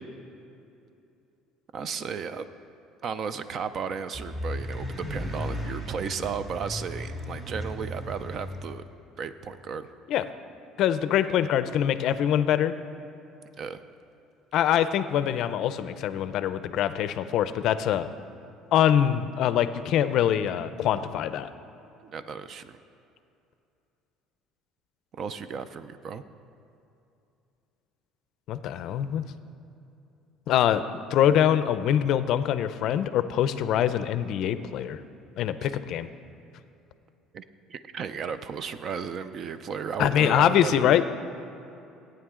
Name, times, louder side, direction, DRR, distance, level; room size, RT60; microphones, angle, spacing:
voice 1, 1.7-2.5 3.0-8.8 9.2-9.9 13.6-13.8 22.0-22.8 25.1-26.2 37.3-37.4 37.7-40.9, right 6 dB, 40° right, 12 dB, 0.4 m, -34 dB
sound 1, 4.1-8.7, equal, 25° right, 1.7 m, -35 dB
voice 2, 10.8-12.7 14.5-18.1 18.7-21.5 28.5-29.3 30.5-30.8 31.1-35.0 35.4-36.1 40.0-41.0, left 10 dB, 60° left, 12 dB, 0.4 m, -24 dB
15.5 x 9.0 x 3.7 m, 2.7 s
cardioid pair, 135°, 0 cm